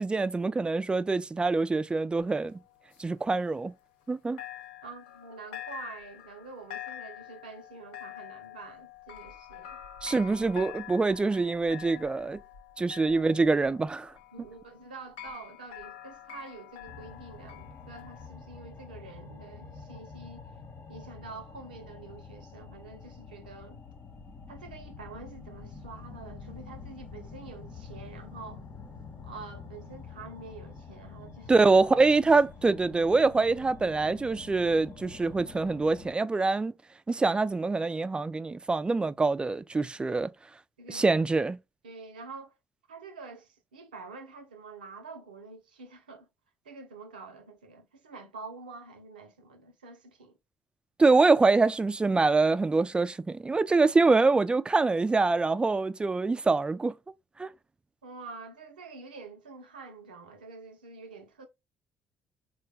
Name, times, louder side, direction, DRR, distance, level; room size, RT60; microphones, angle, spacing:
voice 1, 0.0-2.6 3.0-3.7 4.1-4.4 10.0-12.4 12.8-14.1 31.5-36.7 37.1-40.3 40.9-41.6 51.0-56.9 57.4-57.5, right 3 dB, 20° right, 0.4 m, -25 dB
sound 1, 2.2-4.1 4.4-18.3, left 12 dB, 80° left, 0.5 m, -46 dB
voice 2, 4.8-9.8 13.1-13.2 14.3-20.5 20.9-23.8 24.5-28.6 29.2-31.7 40.8-41.0 41.8-42.5 42.9-46.3 46.6-50.4 58.0-61.5, right 4 dB, 85° right, 0.6 m, -46 dB
sound 2, 16.9-36.1, left 4 dB, 45° left, 0.8 m, -47 dB
3.7 x 2.2 x 3.3 m
hypercardioid pair, 50°, 5 cm